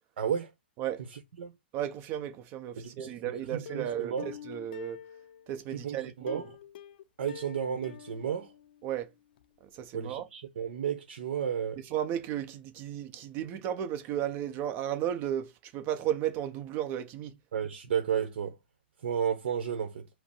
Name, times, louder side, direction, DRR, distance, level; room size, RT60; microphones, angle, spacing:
voice 1, 0.2-0.5 1.1-1.5 2.8-3.2 3.5-4.3 5.7-6.5 7.2-8.5 9.9-11.8 17.5-18.6 19.0-20.1, right 8 dB, 65° right, 0.8 m, -32 dB
voice 2, 1.7-5.0 5.5-6.4 8.8-9.1 9.7-10.3 11.9-17.3, right 11 dB, 30° right, 0.7 m, -34 dB
Plucked string instrument, 3.7-5.6 6.3-9.1 9.4-9.5 9.8-9.9, left 9 dB, 60° left, 0.4 m, -46 dB
5.0 x 2.0 x 4.4 m
hypercardioid pair, 150°, 6 cm